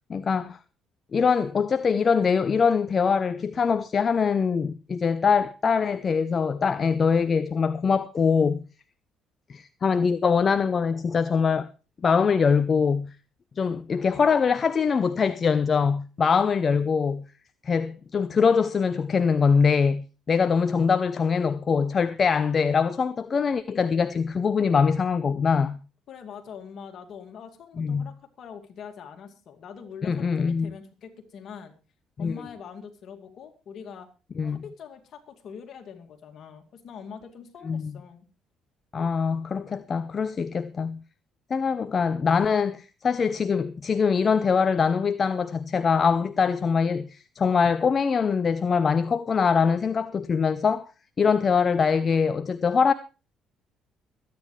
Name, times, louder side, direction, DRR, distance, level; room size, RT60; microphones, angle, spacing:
voice 1, 0.1-0.6 1.1-8.6 9.5-11.7 12.0-13.1 13.6-17.2 17.6-25.8 27.8-28.1 30.0-30.7 32.2-32.3 34.4-34.6 37.6-37.9 38.9-41.0 41.5-50.9 51.2-52.9, left 5 dB, 45° left, 0.6 m, -23 dB
voice 2, 26.1-31.7 32.2-34.1 34.5-38.3, left 7 dB, 60° left, 2.3 m, -43 dB
23.0 x 9.5 x 3.2 m
hypercardioid pair, 60°, 0 cm